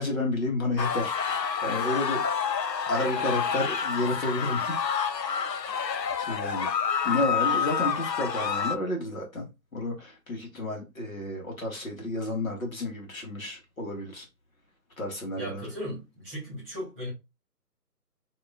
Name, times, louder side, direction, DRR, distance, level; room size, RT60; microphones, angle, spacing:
voice 1, 0.0-2.4 2.9-4.7 6.2-6.7 7.0-14.3 15.0-15.6, left 2 dB, 55° left, 1.8 m, -31 dB
sound 1, 0.8-8.8, left 7 dB, 85° left, 0.7 m, -28 dB
voice 2, 15.4-17.1, equal, 5° right, 1.9 m, -37 dB
4.8 x 3.0 x 2.6 m
figure-of-eight pair, 155°, 49 cm